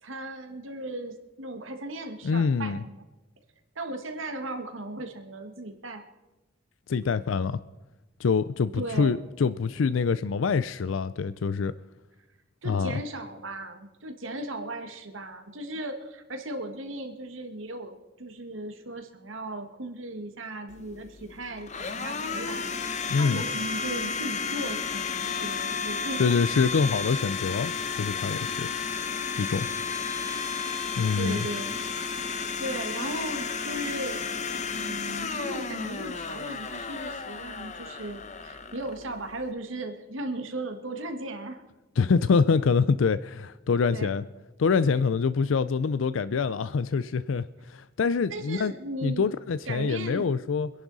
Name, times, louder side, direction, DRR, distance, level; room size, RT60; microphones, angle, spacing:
voice 1, 0.0-3.0 3.8-6.1 8.8-9.2 12.6-26.3 31.1-31.7 32.6-34.2 34.7-41.6 43.9-44.2 48.3-49.3 49.7-50.3, right 1 dB, 80° right, 6 dB, 1.7 m, -37 dB
voice 2, 2.2-2.8 6.9-7.6 8.2-11.7 12.6-13.0 23.1-23.4 26.2-28.7 29.4-29.7 31.0-31.5 42.0-44.2 44.6-48.7 49.0-50.7, left 5 dB, 80° left, 15 dB, 0.4 m, -25 dB
Domestic sounds home sounds, 20.7-39.5, left 5 dB, 35° left, 0.9 m, -33 dB
25.0 x 11.0 x 4.0 m, 1.1 s
head